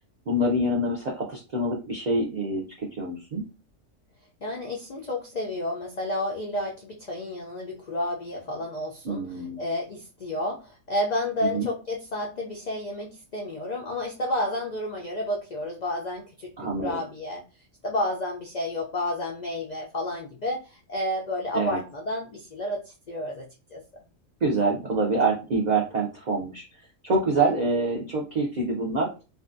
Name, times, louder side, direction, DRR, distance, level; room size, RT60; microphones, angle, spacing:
voice 1, 0.3-3.4 9.0-9.6 11.4-11.7 16.6-17.0 21.5-21.8 24.4-26.6 27.0-29.1, right 2 dB, 75° right, -1 dB, 0.4 m, -26 dB
voice 2, 4.4-16.5 16.8-17.4 17.8-23.5 23.7-23.8 27.4-27.5, left 1 dB, 75° left, -1 dB, 0.3 m, -31 dB
2.6 x 2.3 x 2.5 m, 0.31 s
omnidirectional pair, 1.4 m